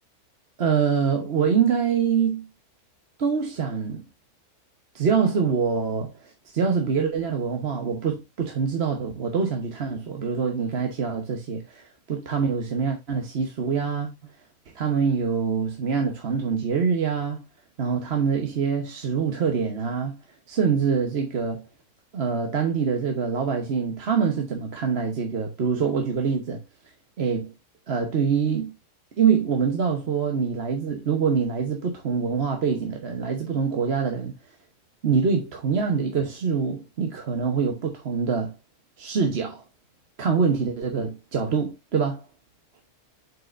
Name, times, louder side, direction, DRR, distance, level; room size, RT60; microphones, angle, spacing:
voice 1, 0.6-2.5 3.2-4.0 4.9-14.1 14.7-17.4 17.8-20.2 20.5-21.6 22.1-26.6 27.2-27.5 27.9-28.7 29.2-34.3 35.0-38.5 39.0-39.6 40.2-42.2, right 6 dB, 45° right, 1.2 m, -25 dB
7.6 x 5.4 x 2.5 m
omnidirectional pair, 1.6 m